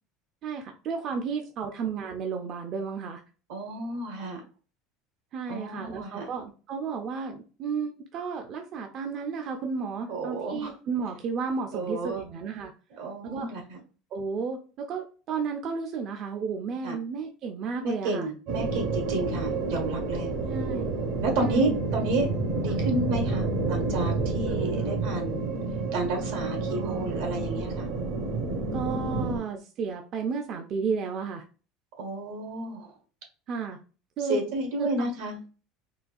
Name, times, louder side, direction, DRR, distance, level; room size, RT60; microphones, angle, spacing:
voice 1, 0.4-3.2 5.3-12.7 13.2-13.5 14.1-18.3 20.5-20.9 21.4-21.8 22.7-22.8 24.5-24.9 26.7-27.1 28.7-31.4 33.5-33.8 34.2-34.4 34.8-35.1, right 5 dB, 45° right, 4 dB, 0.4 m, -33 dB
voice 2, 3.5-4.4 5.5-6.3 10.1-10.7 11.7-12.2 13.0-13.8 16.8-17.0 17.8-20.3 21.2-22.3 22.6-25.4 25.9-27.9 32.0-32.9 34.3-35.4, right 2 dB, 85° right, 1 dB, 1.4 m, -31 dB
sound 1, 18.5-29.4, right 3 dB, 65° right, 0.8 m, -29 dB
3.9 x 2.3 x 2.5 m, 0.36 s
supercardioid pair, 130°, 0 cm